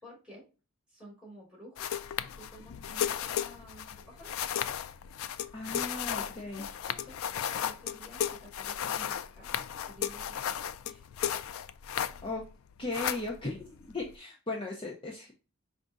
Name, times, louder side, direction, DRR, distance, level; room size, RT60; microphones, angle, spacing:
voice 1, 0.0-0.4 0.9-2.0 2.4-4.3 5.6-7.2 7.5-10.6 10.8-11.0, equal, 5° right, -4 dB, 2.6 m, -52 dB
sound 1, 1.8-12.5 12.7-14.2, left 9 dB, 70° left, 0.3 m, -35 dB
voice 2, 5.5-6.7 12.2-12.4 12.8-15.3, left 2 dB, 25° left, -3 dB, 0.7 m, -37 dB
5.0 x 2.6 x 3.5 m, 0.33 s
head